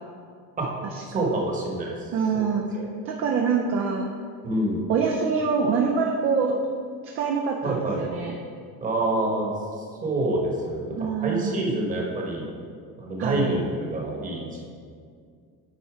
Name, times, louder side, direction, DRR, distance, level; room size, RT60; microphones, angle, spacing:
voice 1, 1.0-2.9 4.4-4.8 7.6-8.0 8.8-12.5 13.0-14.7, right 2 dB, 25° right, -2 dB, 1.3 m, -27 dB
voice 2, 2.1-2.6 3.0-4.1 4.9-6.6 7.1-8.3 11.0-11.6 13.2-13.6, right 5 dB, 40° right, 1 dB, 0.5 m, -25 dB
9.0 x 4.1 x 4.9 m, 2.2 s
cardioid pair, 170°, 35 cm